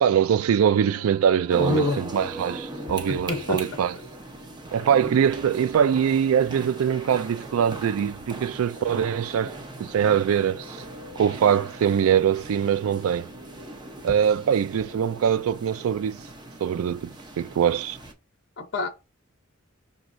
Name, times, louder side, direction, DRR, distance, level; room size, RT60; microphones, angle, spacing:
voice 1, 0.0-3.9 4.7-10.8 11.2-13.3 14.0-16.2 16.6-18.0, right 8 dB, 75° right, 0.3 m, -23 dB
sound 1, 0.7-16.7, equal, 60° right, 0.8 m, -47 dB
sound 2, 1.5-18.1, right 2 dB, 20° right, 0.7 m, -40 dB
voice 2, 1.6-2.0 3.1-3.6 18.6-18.9, left 3 dB, 55° left, 0.7 m, -26 dB
5.3 x 3.1 x 2.5 m
head